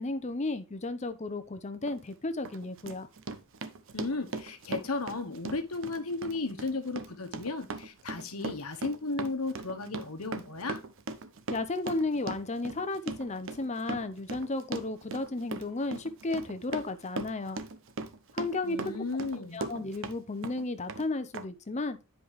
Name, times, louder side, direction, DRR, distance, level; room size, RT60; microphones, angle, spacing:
voice 1, 0.0-3.1 11.5-17.6 18.3-18.8 19.5-22.0, left 2 dB, 30° left, 0.7 m, -33 dB
Run, 1.8-2.0 2.4-20.2 20.4-21.0 21.3-21.4, right 3 dB, 60° right, 0.7 m, -39 dB
voice 2, 3.9-10.8 18.6-19.6, left 3 dB, 80° left, 1.2 m, -34 dB
9.9 x 5.1 x 3.1 m
head